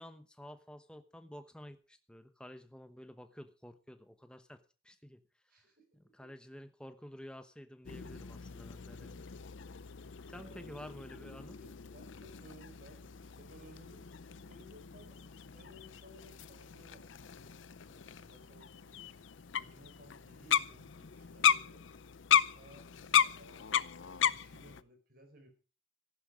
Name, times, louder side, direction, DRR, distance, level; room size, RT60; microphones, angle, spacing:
voice 1, 0.0-5.2 6.0-9.2 10.3-11.6, equal, 5° left, 9 dB, 1.0 m, -51 dB
voice 2, 5.5-5.8 10.3-10.8 11.6-15.2 15.5-19.0 19.5-21.8 22.3-23.9 24.3-25.5, right 1 dB, 50° right, 5 dB, 4.7 m, -59 dB
sound 1, 7.8-24.8, left 9 dB, 75° left, 0.6 m, -35 dB
14.5 x 11.5 x 5.2 m, 0.36 s
head